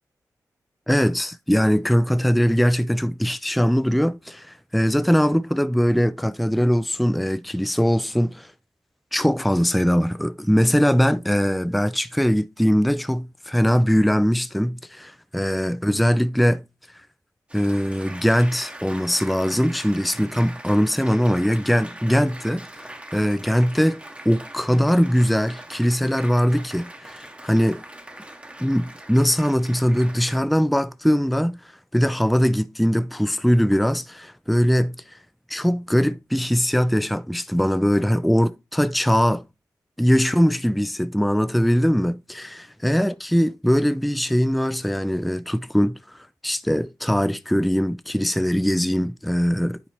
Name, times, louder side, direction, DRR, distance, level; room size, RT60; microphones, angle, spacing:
voice 1, 0.9-8.5 9.1-16.6 17.5-24.0 24.3-27.8 28.6-31.6 31.9-35.0 35.5-39.4 40.0-49.8, equal, ahead, 0.3 m, -21 dB
Applause, 17.5-30.4, right 1 dB, 15° right, 0.9 m, -41 dB
9.8 x 4.1 x 3.0 m
cardioid pair, 60°, 7 cm